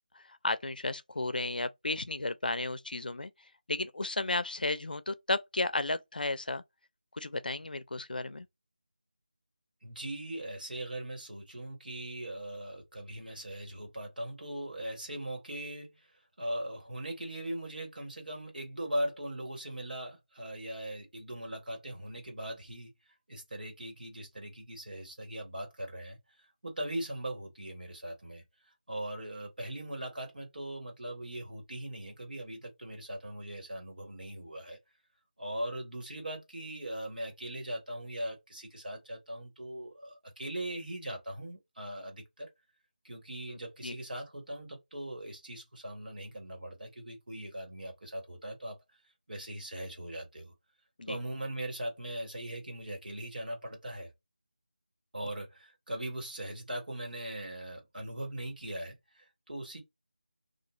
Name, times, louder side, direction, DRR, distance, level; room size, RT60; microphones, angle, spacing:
voice 1, 0.2-3.3 3.7-6.6 7.2-8.5 43.5-43.6 43.8-43.9 51.0-51.2, left 2 dB, 75° left, 0.5 m, -33 dB
voice 2, 9.8-16.1 16.4-22.9 23.3-26.2 26.6-34.8 35.4-42.5 43.0-48.8 49.3-50.5 51.1-54.1 55.1-59.8, right 1 dB, 75° right, 1.3 m, -40 dB
2.4 x 2.3 x 3.0 m
figure-of-eight pair, 175°, 5 cm